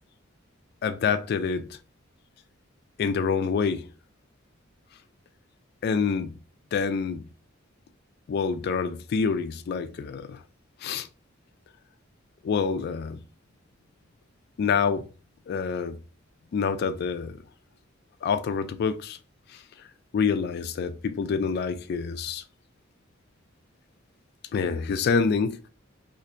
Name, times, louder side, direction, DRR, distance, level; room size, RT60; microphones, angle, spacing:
voice 1, 0.8-1.8 3.0-3.9 5.8-6.4 6.7-7.3 8.3-10.4 10.8-11.1 12.4-13.2 14.6-15.1 15.5-16.0 16.5-17.4 18.2-19.2 19.5-19.6 20.1-22.4 24.5-25.6, left 5 dB, 50° left, 0.3 m, -27 dB
4.2 x 2.5 x 2.5 m
head